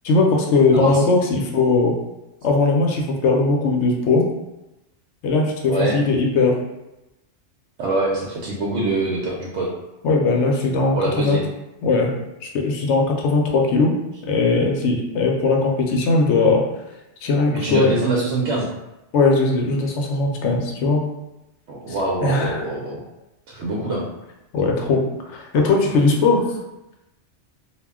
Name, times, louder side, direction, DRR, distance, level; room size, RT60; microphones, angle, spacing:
voice 1, 0.0-1.9 2.4-4.2 5.2-6.6 10.0-11.4 11.8-12.1 12.4-13.9 14.2-16.6 17.2-17.9 19.1-21.0 22.2-22.6 24.5-26.4, left 3 dB, 75° left, 1 dB, 0.8 m, -19 dB
voice 2, 0.7-1.0 5.7-6.0 7.8-9.7 11.0-11.4 17.6-18.7 21.7-23.0 23.5-24.1, right 2 dB, 75° right, -4 dB, 0.9 m, -24 dB
2.3 x 2.1 x 3.5 m, 0.94 s
omnidirectional pair, 1.2 m